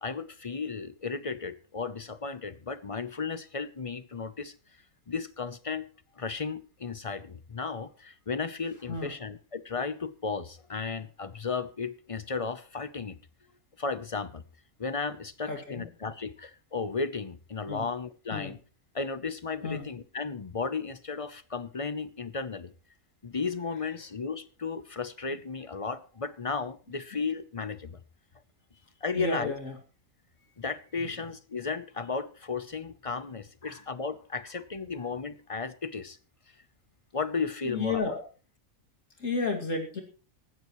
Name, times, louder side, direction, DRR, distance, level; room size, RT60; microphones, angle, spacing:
voice 1, 0.0-4.5 5.1-5.9 6.2-13.2 13.8-14.4 14.8-18.6 18.9-22.7 23.2-28.0 29.0-29.5 30.6-36.2 37.1-38.2, left 4 dB, 30° left, 13 dB, 0.7 m, -34 dB
voice 2, 15.5-15.8 17.7-17.8 18.3-18.5 19.6-19.9 29.1-29.8 31.0-31.1 33.6-33.8 37.6-38.2 39.2-40.0, left 3 dB, 70° left, 1 dB, 2.8 m, -32 dB
18.5 x 15.5 x 3.1 m, 0.38 s
omnidirectional pair, 1.4 m